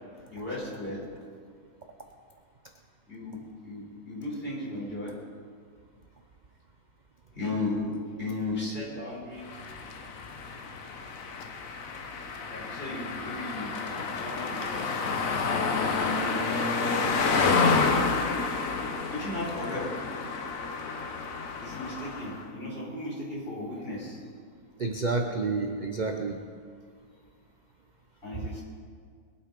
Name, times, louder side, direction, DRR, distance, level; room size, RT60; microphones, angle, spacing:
voice 1, 0.3-1.0 3.1-5.1 7.3-7.8 8.2-9.6 12.5-15.0 16.0-17.7 19.1-19.9 21.6-24.2 28.2-28.6, left 2 dB, 35° left, -5 dB, 4.5 m, -36 dB
sound 1, 9.5-22.4, left 4 dB, 55° left, 1.3 m, -29 dB
voice 2, 24.8-26.5 28.4-28.5, right 3 dB, 45° right, 4 dB, 0.6 m, -30 dB
21.5 x 8.3 x 5.3 m, 2.1 s
omnidirectional pair, 1.8 m